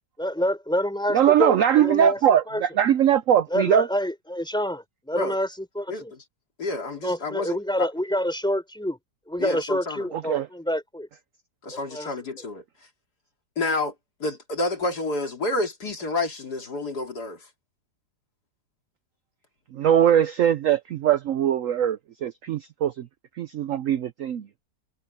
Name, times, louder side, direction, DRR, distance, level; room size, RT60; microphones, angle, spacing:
voice 1, 0.2-2.2 2.5-2.6 3.5-5.5 5.7-6.1 7.0-9.0 9.3-11.1 11.9-12.1, equal, ahead, 4.5 m, -27 dB
voice 2, 1.1-3.9 10.3-10.5 19.7-23.1 23.4-24.5, right 10 dB, 65° right, 0.9 m, -21 dB
voice 3, 5.9-6.2 6.6-7.9 9.4-10.1 11.6-12.6 13.6-13.9 14.2-17.5, left 2 dB, 65° left, 3.5 m, -29 dB
omnidirectional pair, 1.9 m